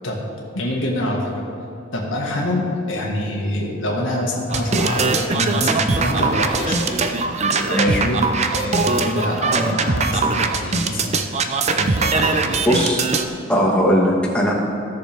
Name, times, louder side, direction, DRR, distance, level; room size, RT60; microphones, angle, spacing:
voice 1, 0.5-1.3 1.9-7.2 7.5-11.2 11.7-12.7, left 1 dB, 85° left, -2 dB, 1.9 m, -25 dB
sound 1, 4.5-13.2, right 3 dB, 35° right, 0.6 m, -21 dB
voice 2, 12.6-13.0 13.5-14.5, equal, 5° left, -3 dB, 1.6 m, -18 dB
16.5 x 6.7 x 3.5 m, 2.7 s
head